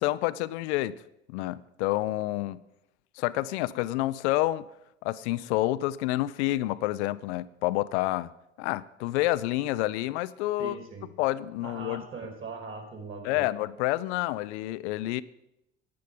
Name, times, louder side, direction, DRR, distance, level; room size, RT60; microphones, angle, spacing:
voice 1, 0.0-1.0 1.3-2.6 3.2-4.7 5.0-8.3 8.6-10.8 11.2-12.0 13.2-15.2, left 16 dB, 65° left, 0.5 m, -28 dB
voice 2, 10.6-11.1 11.6-13.5, right 4 dB, 35° right, 3.1 m, -40 dB
10.5 x 9.4 x 5.2 m
hypercardioid pair, 70°, 38 cm